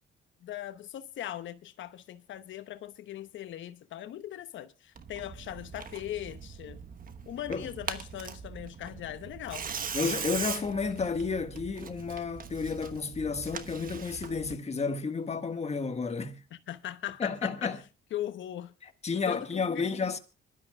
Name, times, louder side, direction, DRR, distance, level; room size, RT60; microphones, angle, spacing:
voice 1, 0.4-6.8 7.3-9.7 16.7-17.8 18.1-18.7 19.3-19.9, left 12 dB, 75° left, 0.9 m, -39 dB
Tearing, 5.0-14.6, right 6 dB, 45° right, 1.2 m, -40 dB
voice 2, 9.9-16.4 17.2-17.8 18.8-20.2, left 5 dB, 35° left, 1.6 m, -31 dB
25.5 x 12.0 x 2.3 m
cardioid pair, 90°, 20 cm